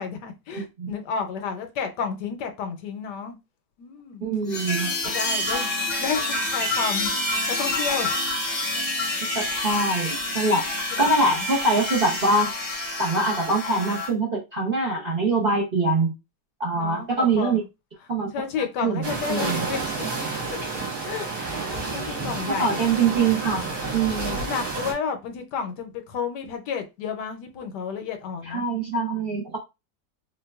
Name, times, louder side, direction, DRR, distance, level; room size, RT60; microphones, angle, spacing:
voice 1, 0.0-3.4 3.8-4.2 4.8-7.1 7.5-8.1 10.4-10.6 10.9-11.4 16.7-17.7 18.3-20.6 21.0-21.3 21.6-22.8 23.6-28.6, left 6 dB, 75° left, 1.2 m, -32 dB
voice 2, 0.5-0.9 4.2-4.9 9.3-10.6 11.0-12.5 13.0-16.1 16.6-17.6 18.1-18.3 18.8-19.0 19.3-19.7 22.0-22.1 22.5-23.7 23.9-24.4 28.4-29.6, right 3 dB, 50° right, 0.7 m, -23 dB
sound 1, 4.5-14.1, left 2 dB, 35° left, 0.7 m, -28 dB
sound 2, 19.0-24.9, right 3 dB, 70° right, 1.9 m, -30 dB
4.3 x 2.2 x 2.3 m
omnidirectional pair, 1.9 m